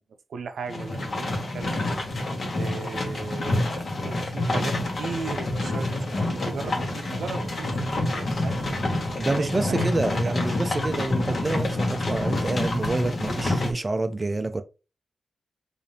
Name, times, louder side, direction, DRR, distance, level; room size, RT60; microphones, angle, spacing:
voice 1, 0.3-1.9 2.5-8.8 9.3-9.9 10.1-10.5 10.9-11.0, right 5 dB, 85° right, 0.5 m, -37 dB
sound 1, 0.7-13.7, left 2 dB, 45° left, 1.0 m, -27 dB
voice 2, 9.2-14.6, right 2 dB, 25° right, 0.3 m, -27 dB
4.9 x 2.5 x 2.7 m
wide cardioid pair, 140°, 0 cm